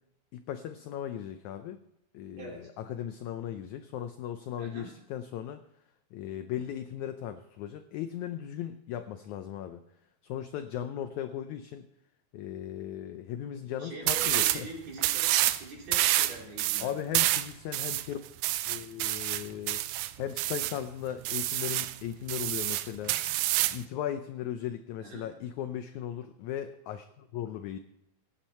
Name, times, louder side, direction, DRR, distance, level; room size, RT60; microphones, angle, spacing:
voice 1, 0.3-1.8 2.1-5.6 6.1-9.8 10.2-11.9 12.3-14.7 16.8-18.2 18.7-19.8 20.2-23.1 23.7-27.8, left 10 dB, 85° left, 9 dB, 1.7 m, -37 dB
voice 2, 2.4-2.7 4.6-4.9 13.8-15.3 15.6-17.0 25.0-25.3, right 2 dB, 50° right, -2 dB, 4.0 m, -43 dB
sound 1, 14.1-14.6 15.0-15.6 15.9-20.8 21.3-21.9 22.3-23.8, right 15 dB, 80° right, 2.1 m, -28 dB
16.0 x 9.4 x 4.3 m, 0.81 s
omnidirectional pair, 4.2 m